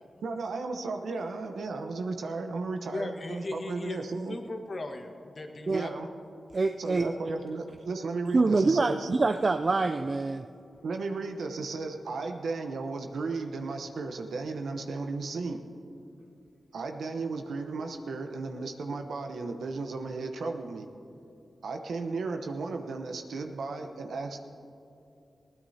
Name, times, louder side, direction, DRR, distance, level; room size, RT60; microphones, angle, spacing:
voice 1, 0.2-4.4 5.7-6.1 6.8-9.1 10.8-15.6 16.7-20.9 21.6-24.4, right 3 dB, 85° right, 5 dB, 0.9 m, -34 dB
voice 2, 2.9-4.0 4.3-5.9, left 2 dB, 50° left, 4 dB, 1.5 m, -37 dB
voice 3, 6.5-7.1 8.3-10.5, right 3 dB, 50° right, 7 dB, 0.4 m, -25 dB
20.5 x 16.5 x 2.8 m, 2.7 s
cardioid pair, 45°, 0 cm